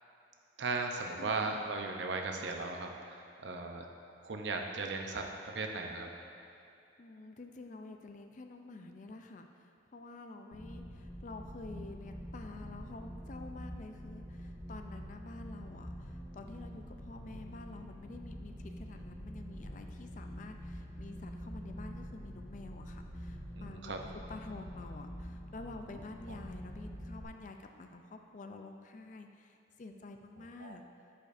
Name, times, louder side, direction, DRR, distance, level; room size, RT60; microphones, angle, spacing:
voice 1, 0.6-3.9 4.2-5.3 5.5-6.1 23.5-24.0 30.6-30.8, right 3 dB, 75° right, 3 dB, 0.6 m, -37 dB
voice 2, 1.2-1.6 7.0-23.9 24.3-30.8, left 2 dB, 45° left, 5 dB, 0.4 m, -49 dB
sound 1, 10.5-27.2, equal, 5° right, 0.8 m, -46 dB
11.0 x 5.1 x 2.6 m, 2.7 s
head